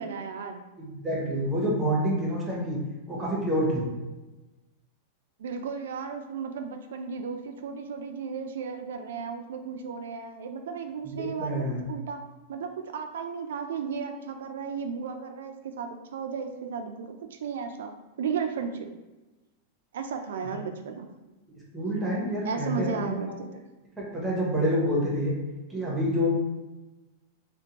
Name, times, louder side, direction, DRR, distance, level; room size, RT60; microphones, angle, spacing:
voice 1, 0.0-0.6 5.4-12.2 12.5-17.9 18.2-18.9 19.9-21.1 22.4-23.6, right 6 dB, 85° right, 5 dB, 0.3 m, -34 dB
voice 2, 0.8-2.8 3.1-3.9 11.2-11.8 21.7-23.3 24.0-25.3 25.7-26.3, equal, 10° right, -5 dB, 0.9 m, -27 dB
2.5 x 2.2 x 2.8 m, 1.1 s
supercardioid pair, 140°, 0 cm